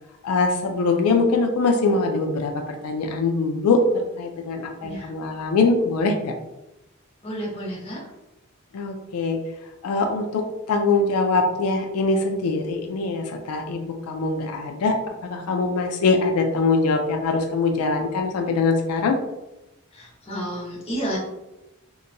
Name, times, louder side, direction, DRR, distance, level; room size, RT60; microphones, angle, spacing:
voice 1, 0.2-6.3 8.7-9.4 9.8-15.0 15.2-19.2, left 3 dB, 90° left, 3 dB, 0.4 m, -23 dB
voice 2, 4.8-5.1 7.2-8.0 19.9-21.2, equal, 25° left, -5 dB, 0.7 m, -31 dB
2.8 x 2.1 x 2.5 m, 0.97 s
head